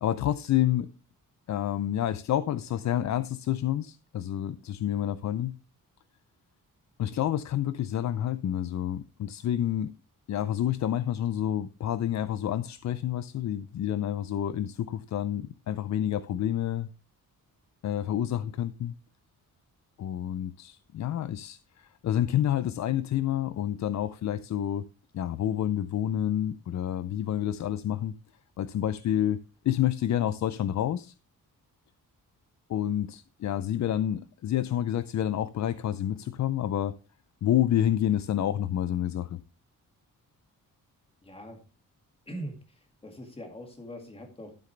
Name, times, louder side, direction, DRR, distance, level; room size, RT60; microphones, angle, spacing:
voice 1, 0.0-0.9 1.5-5.5 7.0-9.9 10.3-16.9 17.8-18.9 20.0-24.9 25.1-28.1 28.6-31.1 32.7-37.0 37.4-39.4, left 11 dB, 55° left, 0.5 m, -29 dB
voice 2, 41.2-41.6 42.3-44.5, equal, 15° left, 2.1 m, -42 dB
12.5 x 7.7 x 3.3 m
wide cardioid pair, 175°, 34 cm